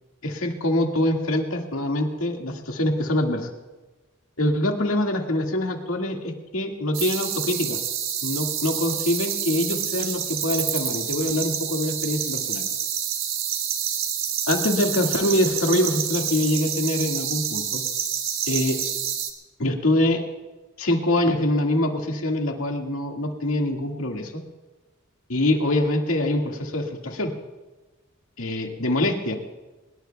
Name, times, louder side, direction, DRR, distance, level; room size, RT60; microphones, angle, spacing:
voice 1, 0.2-3.5 4.4-7.8 8.2-12.6 14.5-17.8 18.5-18.8 19.6-20.2 20.8-24.4 25.3-27.3 28.4-29.6, left 1 dB, 85° left, 2 dB, 1.9 m, -24 dB
sound 1, 6.9-19.3, right 9 dB, 70° right, 1.4 m, -28 dB
24.0 x 20.0 x 2.3 m, 1.2 s
head